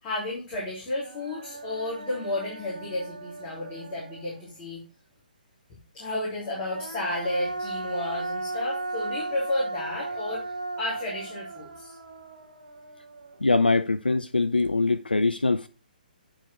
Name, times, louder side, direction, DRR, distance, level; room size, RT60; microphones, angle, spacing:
voice 1, 0.0-4.8 5.9-12.0, left 2 dB, 25° left, 3.5 m, -32 dB
Human voice, 0.5-0.6 1.0-4.6 6.3-13.6, right 2 dB, 60° right, 1.2 m, -37 dB
voice 2, 13.4-15.7, left 3 dB, 85° left, 0.5 m, -23 dB
8.9 x 4.6 x 4.5 m
figure-of-eight pair, 130°, 5 cm